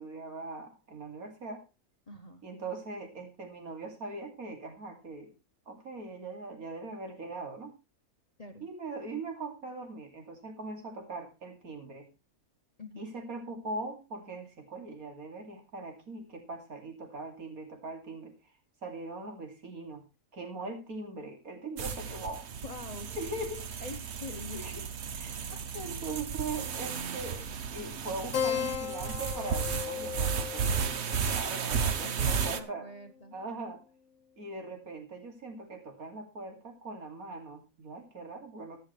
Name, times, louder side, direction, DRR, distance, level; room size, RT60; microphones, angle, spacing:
voice 1, 0.0-1.6 2.4-5.3 5.7-7.7 8.6-12.1 13.0-18.3 18.8-20.0 20.3-22.5 23.2-23.9 24.3-24.9 25.1-25.3 25.7-32.9 33.3-33.8 34.4-38.8, right 3 dB, 80° right, 4 dB, 3.0 m, -41 dB
voice 2, 2.1-2.4 8.4-8.6 12.8-13.1 22.6-23.1 23.8-24.6 25.5-25.7 32.0-33.4, left 3 dB, 30° left, 8 dB, 0.8 m, -44 dB
sound 1, 21.8-32.6, right 6 dB, 55° right, 1.1 m, -34 dB
Keyboard (musical), 28.3-33.3, left 9 dB, 65° left, 1.3 m, -37 dB
14.5 x 10.0 x 3.2 m, 0.27 s
omnidirectional pair, 1.5 m